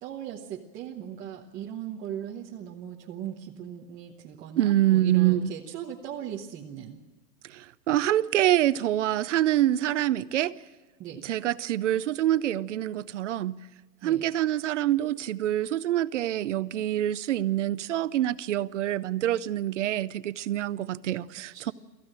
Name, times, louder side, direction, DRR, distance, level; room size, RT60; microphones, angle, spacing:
voice 1, 0.0-7.0 11.0-11.2 14.0-14.2 21.5-21.7, right 9 dB, 15° right, 0.9 m, -38 dB
voice 2, 4.6-5.5 7.5-10.6 11.2-13.6 14.0-21.7, right 13 dB, 50° right, 0.6 m, -26 dB
24.5 x 15.0 x 8.8 m
hypercardioid pair, 160°, 49 cm